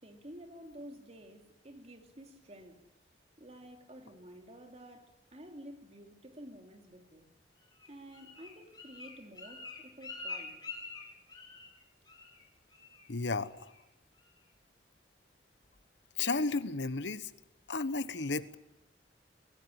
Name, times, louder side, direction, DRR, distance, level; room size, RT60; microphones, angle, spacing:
voice 1, 0.0-2.8 3.4-7.3 7.8-10.6, equal, 35° right, 3.0 m, -51 dB
Bird, 7.7-11.8 12.1-12.4 12.7-13.1 13.4-13.8 14.2-14.3, left 3 dB, 25° left, 5.0 m, -46 dB
voice 2, 13.1-13.7 16.2-17.3 17.7-18.6, left 3 dB, 80° left, 1.2 m, -33 dB
24.0 x 18.0 x 10.0 m
head